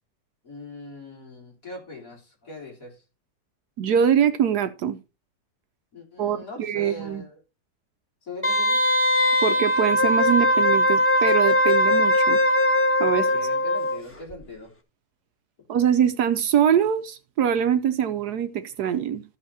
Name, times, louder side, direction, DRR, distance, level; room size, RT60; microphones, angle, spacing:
voice 1, 0.4-3.0 5.9-7.4 8.2-8.8 13.1-14.7, left 3 dB, 50° left, 4.0 m, -40 dB
voice 2, 3.8-5.0 6.2-7.2 9.4-12.4 13.0-13.2 15.7-19.2, right 8 dB, 70° right, 1.2 m, -23 dB
Wind instrument woodwind instrument, 8.4-14.0 14.3-14.4, left 1 dB, 10° left, 1.2 m, -20 dB
13.5 x 5.6 x 4.2 m
omnidirectional pair, 1.9 m